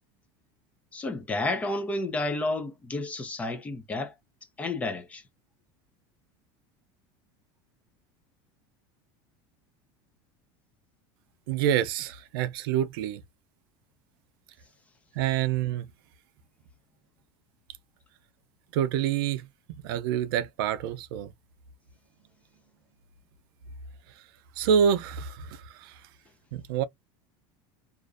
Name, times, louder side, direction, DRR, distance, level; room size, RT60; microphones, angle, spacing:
voice 1, 0.9-4.1 4.6-5.2, left 2 dB, 10° left, 0.4 m, -31 dB
voice 2, 11.5-13.2 15.2-15.8 18.7-19.4 19.8-21.3 24.6-25.9 26.5-26.8, right 9 dB, 80° right, 0.4 m, -27 dB
2.4 x 2.1 x 2.4 m
cardioid pair, 170°, 12 cm